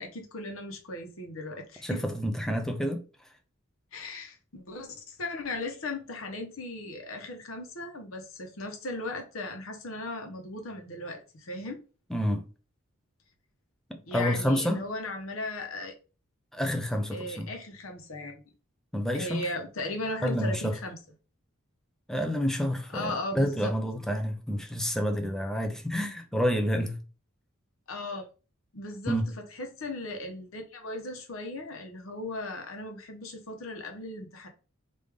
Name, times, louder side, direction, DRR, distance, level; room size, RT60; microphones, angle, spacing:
voice 1, 0.0-2.0 3.9-11.8 14.1-15.9 17.1-18.4 19.1-21.0 22.9-23.7 27.9-28.3 28.7-29.2 29.5-34.5, left 2 dB, 75° left, 0.9 m, -37 dB
voice 2, 1.8-3.0 12.1-12.5 13.9-14.8 16.5-17.5 18.9-19.4 20.2-20.8 22.1-27.0 29.1-29.3, equal, ahead, 0.4 m, -29 dB
3.3 x 2.6 x 3.4 m
head